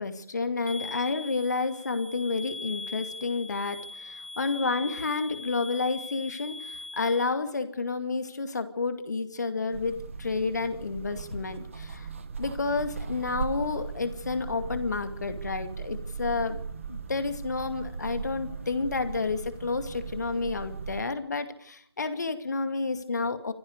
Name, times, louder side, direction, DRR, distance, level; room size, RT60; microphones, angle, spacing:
voice 1, 0.0-12.1 12.4-16.6 16.9-23.5, left 4 dB, 45° left, 9 dB, 2.4 m, -30 dB
sound 1, 0.7-7.2, left 3 dB, 85° right, 3.9 m, -41 dB
sound 2, 9.7-21.0, right 5 dB, 30° right, 1.6 m, -38 dB
27.0 x 15.0 x 8.1 m, 0.71 s
figure-of-eight pair, 160°, 13 cm